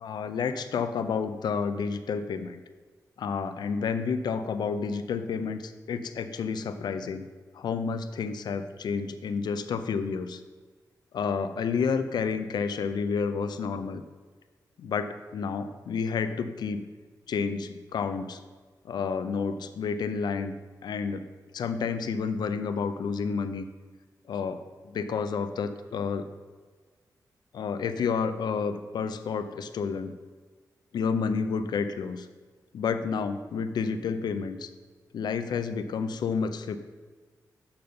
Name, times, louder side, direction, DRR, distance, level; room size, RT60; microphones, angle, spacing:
voice 1, 0.0-2.6 3.2-7.3 7.5-10.4 11.1-14.0 14.8-16.8 17.3-18.4 18.8-20.5 20.8-21.3 21.5-23.6 24.3-26.3 27.5-30.2 30.9-32.3 32.7-34.7 35.1-36.8, left 5 dB, 90° left, 10 dB, 0.5 m, -30 dB
6.8 x 5.7 x 5.1 m, 1.4 s
cardioid pair, 85°, 7 cm